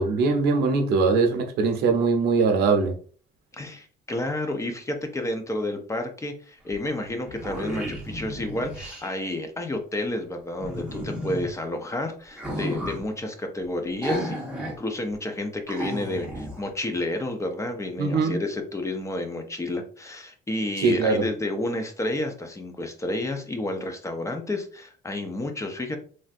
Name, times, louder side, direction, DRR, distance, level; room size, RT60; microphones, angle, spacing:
voice 1, 0.0-3.0 18.0-18.4 20.8-21.3, right 4 dB, 75° right, 6 dB, 0.6 m, -21 dB
voice 2, 3.6-14.4 14.8-26.0, left 1 dB, 20° left, 5 dB, 0.5 m, -30 dB
sound 1, 6.7-6.8 7.1-9.1 10.6-11.5 12.3-13.0 14.0-14.8 15.1-15.2 15.7-16.6, equal, 5° right, 0.9 m, -33 dB
3.3 x 2.5 x 2.4 m, 0.43 s
cardioid pair, 110°, 17 cm